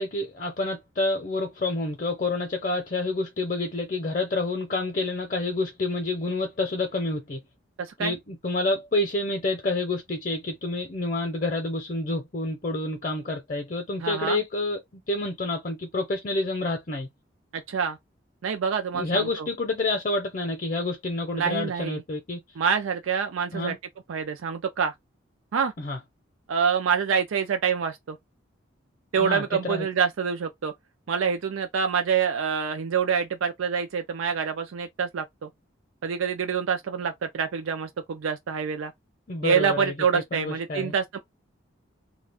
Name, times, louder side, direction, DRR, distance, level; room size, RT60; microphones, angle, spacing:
voice 1, 0.0-7.4 8.0-17.1 18.9-22.4 23.5-23.8 25.8-26.0 29.2-29.9 39.3-40.9, left 2 dB, 40° left, 0.6 m, -28 dB
voice 2, 7.8-8.1 14.0-14.4 17.5-18.0 18.4-19.5 21.3-22.0 22.6-23.7 24.1-24.9 25.5-25.7 26.5-28.2 29.1-30.7 31.1-35.5 36.0-38.9 39.4-41.2, right 6 dB, 90° right, 0.4 m, -26 dB
2.3 x 2.2 x 3.4 m
head